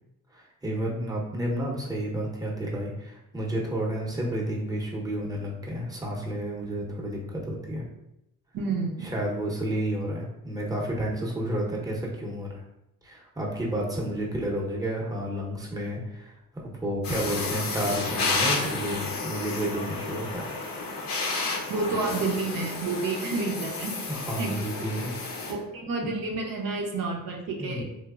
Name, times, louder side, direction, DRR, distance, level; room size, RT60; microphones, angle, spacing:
voice 1, 0.3-7.8 9.0-12.5 13.0-20.5 24.1-25.2 27.6-27.8, right 1 dB, 10° right, -2 dB, 0.7 m, -31 dB
voice 2, 8.5-9.1 21.7-24.5 25.5-27.8, right 3 dB, 75° right, 0 dB, 0.6 m, -30 dB
sound 1, 17.0-25.5, left 3 dB, 80° left, 0.6 m, -31 dB
3.1 x 2.0 x 2.3 m, 0.85 s
cardioid pair, 65°, 35 cm